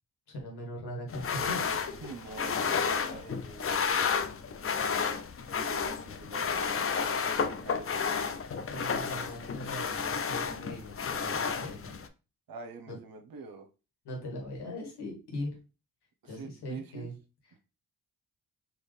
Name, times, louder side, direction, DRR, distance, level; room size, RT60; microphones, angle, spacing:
voice 1, 0.3-1.8 2.3-2.5 3.0-3.4 8.7-11.9 12.9-13.0 14.0-15.5 16.2-17.2, left 1 dB, 75° left, -1 dB, 1.9 m, -40 dB
sound 1, 1.1-12.1, left 6 dB, 35° left, 0.6 m, -32 dB
voice 2, 2.0-2.5 2.8-4.0 5.5-8.0 12.5-13.7 16.2-17.1 17.5-17.6, right 4 dB, 60° right, 6 dB, 0.9 m, -46 dB
4.2 x 3.0 x 3.3 m, 0.31 s
supercardioid pair, 50°, 40 cm